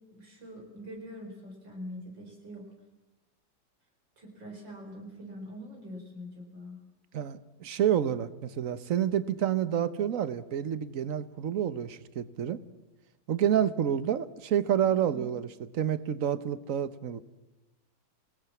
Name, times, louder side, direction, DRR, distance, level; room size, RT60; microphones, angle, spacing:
voice 1, 0.1-2.7 4.2-6.8 14.9-15.3, equal, 80° right, 1 dB, 5.1 m, -44 dB
voice 2, 7.1-12.6 13.3-15.5 15.7-17.2, right 9 dB, 50° right, 14 dB, 1.3 m, -28 dB
28.5 x 19.0 x 7.3 m, 1.0 s
omnidirectional pair, 2.0 m